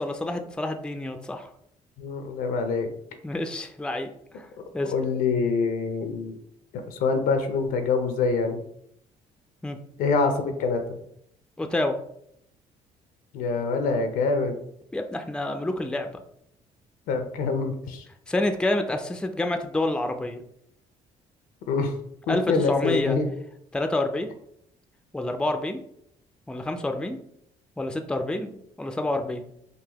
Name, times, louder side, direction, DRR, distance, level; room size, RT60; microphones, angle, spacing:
voice 1, 0.0-1.5 3.2-4.1 4.3-4.5 4.7-4.9 9.6-9.8 11.6-12.0 14.9-16.2 18.3-20.4 22.3-22.4 22.7-23.2 23.7-24.3 25.1-25.8 26.5-27.2 27.8-28.5 28.8-29.4, left 1 dB, 5° left, 6 dB, 0.4 m, -28 dB
voice 2, 2.0-2.9 4.8-6.4 6.9-8.6 10.0-11.0 13.3-14.6 17.1-18.0 21.7-21.9 22.3-23.3, left 4 dB, 80° left, 6 dB, 0.6 m, -25 dB
3.9 x 2.6 x 2.9 m, 0.71 s
cardioid pair, 80°, 15 cm